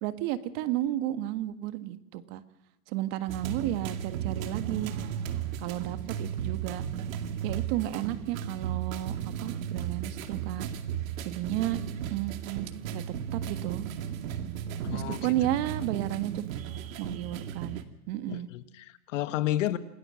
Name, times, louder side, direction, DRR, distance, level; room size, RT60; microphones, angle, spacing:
voice 1, 0.0-2.4 2.9-4.9 5.6-6.9 7.4-10.7 11.2-11.8 12.1-13.0 13.3-13.8 14.9-16.4 17.0-17.8 18.1-18.5, right 14 dB, 40° right, 10 dB, 1.6 m, -32 dB
sound 1, 3.3-17.8, right 9 dB, 65° right, 2.4 m, -35 dB
voice 2, 14.8-15.3 18.3-19.8, left 13 dB, 55° left, 12 dB, 1.5 m, -31 dB
27.5 x 19.5 x 6.4 m, 0.83 s
hypercardioid pair, 135°, 44 cm